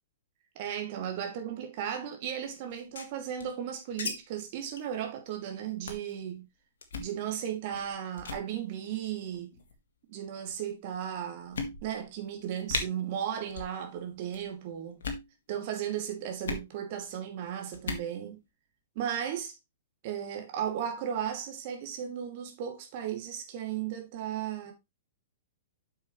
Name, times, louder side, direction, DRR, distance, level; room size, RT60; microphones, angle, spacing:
voice 1, 0.6-6.5 7.0-9.5 10.1-15.0 15.5-18.4 18.9-19.5 20.0-24.7, right 9 dB, 45° right, 2.5 m, -35 dB
sound 1, 2.7-4.1 4.4-4.5 4.7-4.9 5.3-5.5 5.9-6.1 6.8-7.1 7.7-7.9 8.2-8.4 9.3-9.8 10.5-10.6 11.0-11.1 11.5-12.1 12.4-12.5 12.7-12.8 13.5-13.8 14.0-14.4 14.9-15.3 16.4-16.7 17.7-18.1, left 4 dB, 65° left, 1.9 m, -36 dB
9.0 x 6.3 x 3.2 m
figure-of-eight pair, 110°, 0 cm